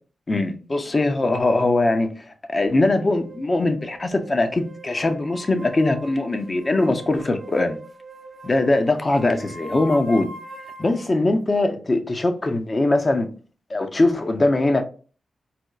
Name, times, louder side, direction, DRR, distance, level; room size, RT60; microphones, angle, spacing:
voice 1, 0.3-2.1 2.5-7.8 8.4-10.3 10.8-13.3 13.7-14.8, left 2 dB, 40° left, 0.6 m, -21 dB
sound 1, 2.9-11.1, right 2 dB, 40° right, 0.6 m, -41 dB
4.2 x 2.2 x 2.3 m
cardioid pair, 50°, 0 cm